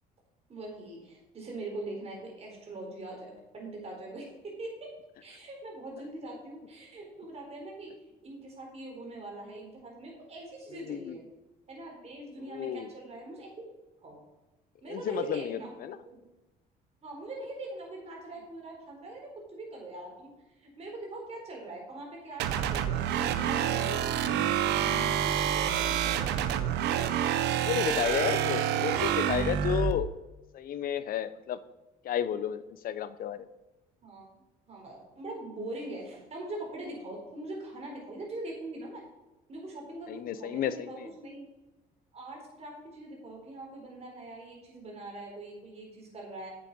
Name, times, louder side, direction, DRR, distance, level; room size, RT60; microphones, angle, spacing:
voice 1, 0.5-4.9 5.2-7.9 8.2-11.2 11.7-13.6 14.0-14.2 14.8-15.7 16.1-16.2 17.0-20.3 20.6-24.4 25.2-26.4 34.0-39.0 39.5-41.4 42.1-46.5, right 2 dB, 40° right, -1 dB, 4.1 m, -42 dB
voice 2, 12.5-12.9 14.9-16.0 23.9-24.0 27.6-30.1 30.5-31.6 32.0-33.4 40.1-41.1, left 9 dB, 60° left, 14 dB, 0.7 m, -32 dB
sound 1, 22.3-22.6 22.8-29.5, left 12 dB, 85° left, 1.1 m, -49 dB
sound 2, 22.4-29.9, right 10 dB, 85° right, 0.8 m, -28 dB
8.6 x 7.3 x 5.4 m, 1.0 s
cardioid pair, 110°, 17 cm